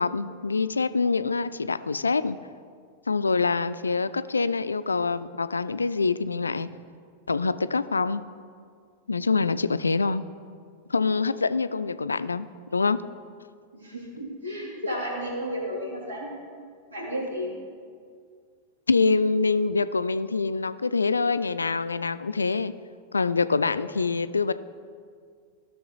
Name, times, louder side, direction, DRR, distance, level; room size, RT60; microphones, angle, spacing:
voice 1, 0.0-2.4 3.1-6.7 7.3-8.2 9.1-10.2 10.9-13.0 18.9-22.7 23.1-24.5, left 4 dB, 75° left, 14 dB, 0.3 m, -25 dB
voice 2, 13.7-16.3 16.9-17.6, equal, 75° right, -4 dB, 2.9 m, -33 dB
15.5 x 6.2 x 4.0 m, 2.1 s
figure-of-eight pair, 90°, 0 cm